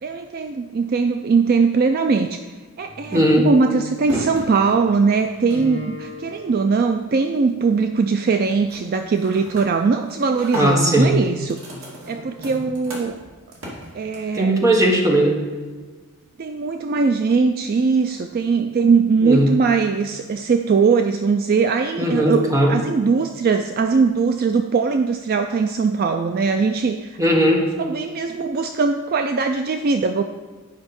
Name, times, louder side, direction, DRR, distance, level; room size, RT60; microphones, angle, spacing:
voice 1, 0.0-2.4 2.8-11.6 12.1-13.1 13.9-14.6 16.4-27.2 27.8-30.2, right 4 dB, 45° right, 6 dB, 0.4 m, -20 dB
sound 1, 2.8-7.3 7.6-8.0 8.4-8.8 9.1-14.4, equal, 80° right, 2.4 m, -35 dB
voice 2, 3.1-3.5 10.5-11.2 14.3-15.4 19.2-19.5 22.0-22.7 27.2-27.6, right 1 dB, 15° right, -1 dB, 1.3 m, -17 dB
9.0 x 5.2 x 5.3 m, 1.4 s
head